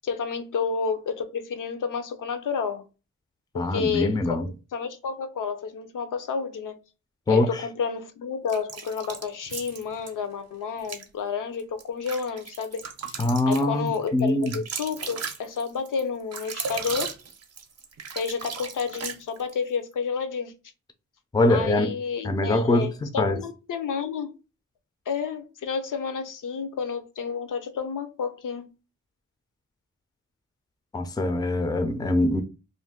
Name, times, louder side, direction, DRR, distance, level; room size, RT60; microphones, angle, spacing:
voice 1, 0.0-2.8 3.5-6.8 7.3-13.2 13.5-17.1 18.2-20.5 21.5-24.3 25.1-28.7, left 6 dB, 80° left, 0.5 m, -30 dB
voice 2, 3.5-4.5 7.3-7.6 13.2-14.5 21.3-21.9 22.2-23.4 30.9-32.4, left 2 dB, 15° left, 0.4 m, -23 dB
sound 1, 8.5-10.1 10.8-11.1 11.6-19.6, right 5 dB, 55° right, 0.6 m, -36 dB
2.5 x 2.1 x 3.5 m
wide cardioid pair, 110°, 31 cm